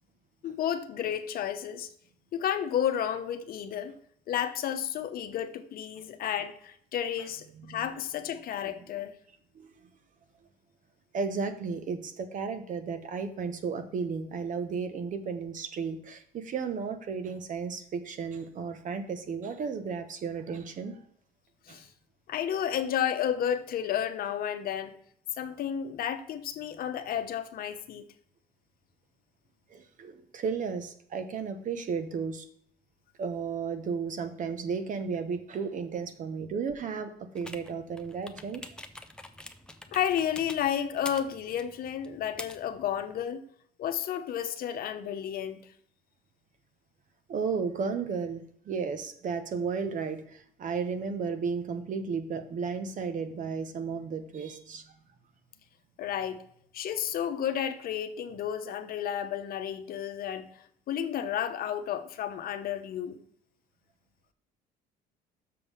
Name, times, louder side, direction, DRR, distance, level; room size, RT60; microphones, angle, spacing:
voice 1, 0.4-1.9 2.3-3.9 4.3-9.1 21.7-21.9 22.3-24.9 25.4-28.0 39.9-43.4 43.8-45.6 56.0-56.4 56.7-63.2, left 9 dB, 60° left, 0.9 m, -32 dB
voice 2, 7.6-7.9 9.5-9.7 11.1-20.9 21.7-21.8 29.7-32.5 33.2-38.8 47.3-54.9, right 5 dB, 50° right, 1.1 m, -34 dB
sound 1, 37.4-43.2, left 1 dB, 5° left, 0.6 m, -46 dB
6.7 x 5.4 x 5.5 m
cardioid pair, 110°, 17 cm